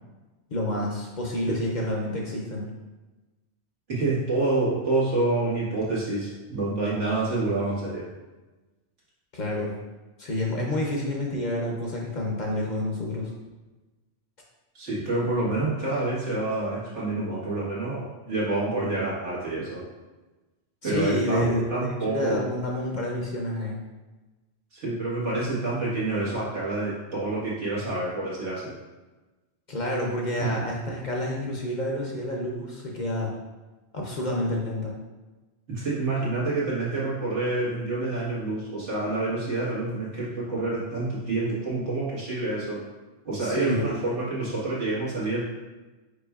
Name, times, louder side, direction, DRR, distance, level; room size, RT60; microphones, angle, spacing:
voice 1, 0.5-2.7 9.3-9.7 10.2-13.3 20.8-23.8 29.7-33.3 33.9-34.9 43.4-43.9, left 1 dB, 50° left, -1 dB, 0.7 m, -29 dB
voice 2, 3.9-8.0 14.7-19.8 20.8-22.5 24.7-28.7 30.4-30.6 35.7-42.8 43.2-45.4, right 2 dB, 85° right, -8 dB, 1.9 m, -27 dB
5.0 x 4.3 x 2.4 m, 1.2 s
omnidirectional pair, 1.2 m